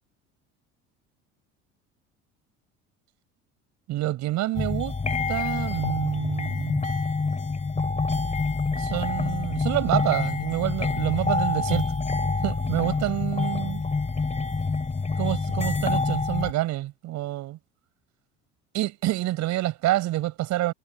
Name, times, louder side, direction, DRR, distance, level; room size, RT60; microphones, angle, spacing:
voice 1, 3.9-5.0 5.3-6.9 8.8-11.9 12.4-13.8 15.2-17.6 18.7-20.7, right 15 dB, 60° right, 4.7 m, -27 dB
sound 1, 4.5-16.5, left 4 dB, 20° left, 2.8 m, -27 dB
supercardioid pair, 80°, 31 cm